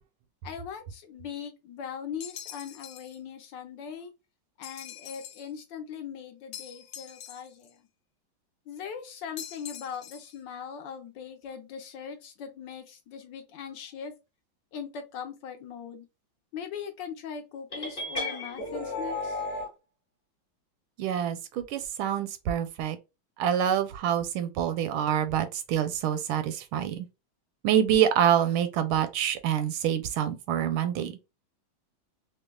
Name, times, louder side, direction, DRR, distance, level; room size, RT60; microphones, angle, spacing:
voice 1, 0.4-4.1 4.6-7.8 8.7-14.1 14.7-16.1 16.5-19.4, left 7 dB, 70° left, 1.2 m, -40 dB
sound 1, 2.2-3.2 4.6-5.5 6.5-7.7 9.4-10.4, left 9 dB, 85° left, 1.4 m, -44 dB
sound 2, 17.7-19.7, left 2 dB, 30° left, 1.1 m, -33 dB
voice 2, 21.0-23.0 23.4-27.1 27.6-31.2, right 9 dB, 85° right, 1.4 m, -26 dB
5.1 x 2.1 x 2.2 m
omnidirectional pair, 2.2 m